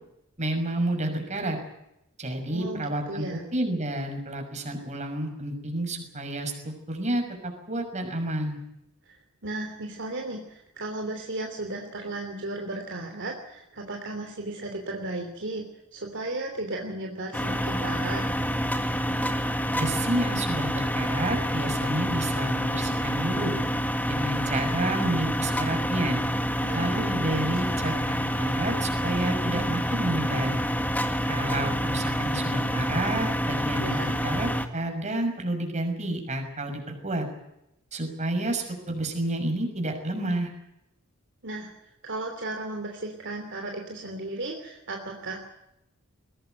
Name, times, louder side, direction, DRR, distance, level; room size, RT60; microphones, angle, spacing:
voice 1, 0.4-1.6 2.2-8.6 19.7-23.6 24.1-26.2 26.7-30.6 31.3-37.3 37.9-40.5, right 1 dB, 35° right, 4 dB, 6.2 m, -30 dB
voice 2, 2.5-3.4 9.0-15.6 15.9-18.3 26.6-26.9 33.8-34.1 41.4-41.7 42.0-45.4, right 2 dB, 55° right, 2 dB, 3.2 m, -35 dB
sound 1, 17.3-34.7, equal, 10° left, 1.9 m, -27 dB
22.0 x 18.5 x 9.3 m, 0.84 s
head